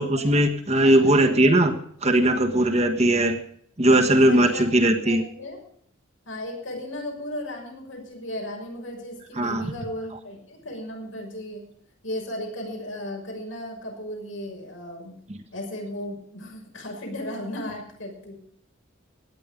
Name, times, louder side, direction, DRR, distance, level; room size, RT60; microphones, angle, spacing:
voice 1, 0.0-1.7 2.0-3.4 3.8-5.2 9.4-9.7, right 1 dB, 35° right, 4 dB, 1.5 m, -19 dB
voice 2, 4.0-4.7 5.0-5.6 6.3-11.7 12.0-15.1 15.5-18.4, left 1 dB, 85° left, 1 dB, 6.3 m, -35 dB
17.5 x 10.5 x 5.2 m, 0.64 s
head